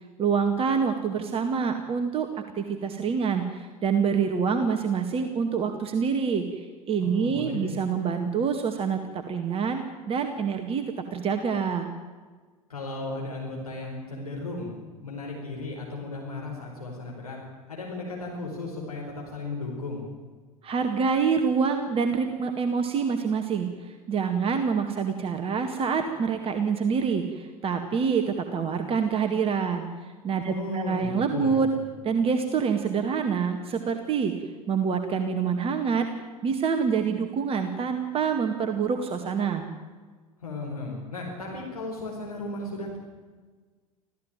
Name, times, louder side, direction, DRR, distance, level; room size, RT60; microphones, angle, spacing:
voice 1, 0.2-11.9 20.6-29.9 30.2-31.7 32.0-34.3 34.7-36.1 36.4-39.7, right 6 dB, 30° right, 6 dB, 2.0 m, -26 dB
voice 2, 7.0-7.8 12.7-14.7 15.0-17.4 17.7-20.1 30.4-31.6 40.4-43.0, left 2 dB, 80° left, -2 dB, 4.8 m, -35 dB
26.5 x 15.5 x 9.1 m, 1.4 s
figure-of-eight pair, 80°, 19 cm